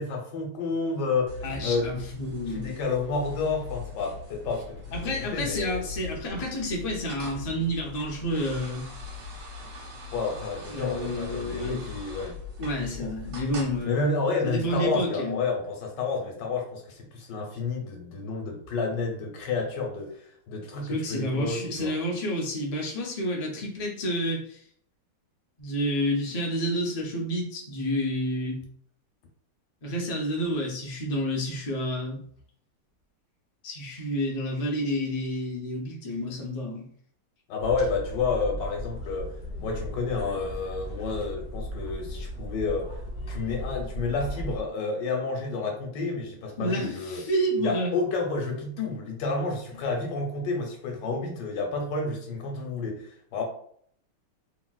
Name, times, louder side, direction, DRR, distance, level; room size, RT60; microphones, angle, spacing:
voice 1, 0.0-1.9 2.5-4.8 5.1-5.8 10.1-12.4 13.0-13.1 13.8-20.2 20.5-21.9 37.5-42.9 43.3-47.2 47.6-53.4, left 4 dB, 80° left, 1 dB, 1.4 m, -30 dB
sound 1, 1.3-13.8, left 4 dB, 75° right, 1.6 m, -40 dB
voice 2, 1.4-2.7 4.9-8.9 10.7-11.9 12.6-14.0 14.4-15.4 20.9-24.6 25.6-28.6 29.8-32.2 33.6-36.8 46.6-47.9 49.7-49.8, equal, 60° left, -2 dB, 0.3 m, -29 dB
sound 2, 37.6-44.6, equal, 45° left, 0.7 m, -36 dB
3.0 x 2.9 x 2.3 m, 0.62 s
omnidirectional pair, 1.9 m